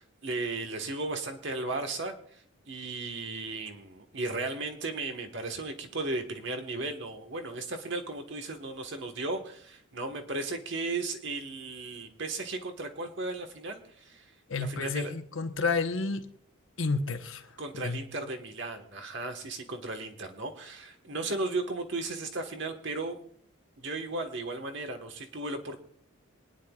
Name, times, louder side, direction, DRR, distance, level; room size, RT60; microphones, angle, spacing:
voice 1, 0.0-14.2 14.6-15.1 17.6-23.2 23.8-25.8, right 2 dB, 55° right, 5 dB, 1.4 m, -35 dB
voice 2, 14.5-16.2 16.8-17.4 17.8-18.0, left 4 dB, 65° left, 7 dB, 1.0 m, -30 dB
26.0 x 10.0 x 2.4 m, 0.63 s
head